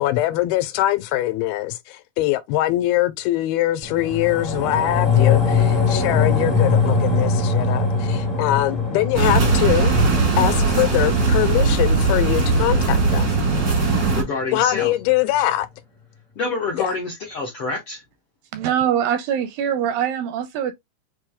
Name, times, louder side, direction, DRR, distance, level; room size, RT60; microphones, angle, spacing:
voice 1, 0.0-9.9 10.4-13.3 14.5-15.7 16.8-16.9, left 15 dB, 85° left, 2.5 m, -22 dB
sound 1, 3.8-14.4 14.8-14.9, left 5 dB, ahead, 0.8 m, -23 dB
sound 2, 9.1-14.2, right 3 dB, 55° right, 0.9 m, -19 dB
voice 2, 14.1-14.9 16.3-18.0, left 3 dB, 65° left, 1.4 m, -27 dB
voice 3, 18.5-20.7, right 9 dB, 80° right, 2.0 m, -23 dB
6.8 x 3.1 x 2.3 m
omnidirectional pair, 4.3 m